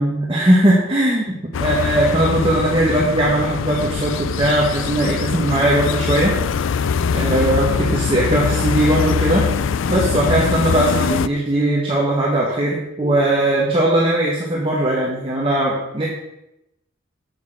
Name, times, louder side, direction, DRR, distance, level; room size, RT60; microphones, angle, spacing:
voice 1, 0.0-1.3 1.6-6.8 7.1-16.0, right 1 dB, 25° right, -4 dB, 1.5 m, -19 dB
sound 1, 1.5-11.3, left 6 dB, 70° left, 0.4 m, -22 dB
8.3 x 6.8 x 6.6 m, 0.89 s
head